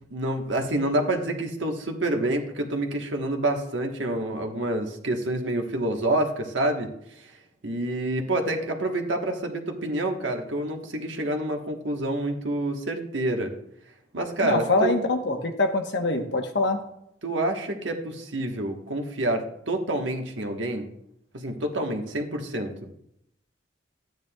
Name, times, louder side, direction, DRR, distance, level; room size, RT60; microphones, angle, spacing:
voice 1, 0.1-7.3 7.6-13.5 14.1-14.9 17.2-20.9 21.3-22.7, right 1 dB, 90° right, 3 dB, 1.2 m, -28 dB
voice 2, 14.4-16.8, left 2 dB, 70° left, 5 dB, 1.0 m, -24 dB
13.0 x 9.3 x 2.3 m, 0.76 s
head